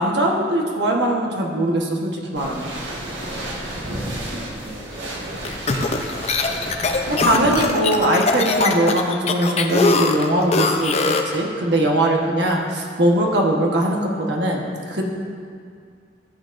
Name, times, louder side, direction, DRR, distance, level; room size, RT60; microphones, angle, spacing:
voice 1, 0.0-2.7 7.1-15.0, right 1 dB, 65° right, 0 dB, 1.2 m, -21 dB
sound 1, 2.3-7.7, right 1 dB, 85° right, 1.5 m, -32 dB
voice 2, 3.2-5.4 5.7-5.9, right 1 dB, 40° right, -4 dB, 1.9 m, -41 dB
sound 2, 5.4-11.4, left 3 dB, 35° left, 0.5 m, -21 dB
14.0 x 8.1 x 2.6 m, 2.2 s
head